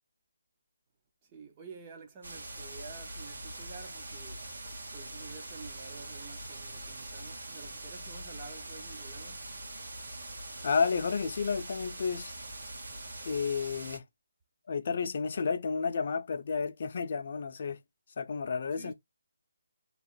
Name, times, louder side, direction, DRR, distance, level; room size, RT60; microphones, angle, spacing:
voice 1, 1.2-4.5 4.9-9.5 18.7-18.9, right 5 dB, 20° right, 0.5 m, -50 dB
sound 1, 2.2-14.0, right 2 dB, 85° right, 1.2 m, -43 dB
voice 2, 10.6-12.3 13.3-14.0 14.7-17.8 18.2-18.9, left 5 dB, 40° left, 0.5 m, -31 dB
2.9 x 2.4 x 3.8 m
hypercardioid pair, 175°, 0 cm